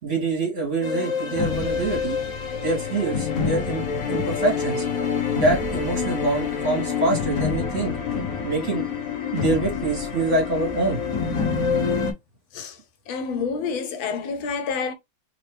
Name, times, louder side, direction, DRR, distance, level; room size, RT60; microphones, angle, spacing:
voice 1, 0.0-2.2 2.6-3.8 4.1-4.8 5.3-8.0 8.4-8.8 9.3-11.0, right 2 dB, 40° right, 2.1 m, -25 dB
sound 1, 0.8-12.1, left 6 dB, 50° left, 1.2 m, -27 dB
voice 2, 13.1-14.9, left 5 dB, 85° left, 1.6 m, -28 dB
3.8 x 3.1 x 3.2 m
omnidirectional pair, 2.1 m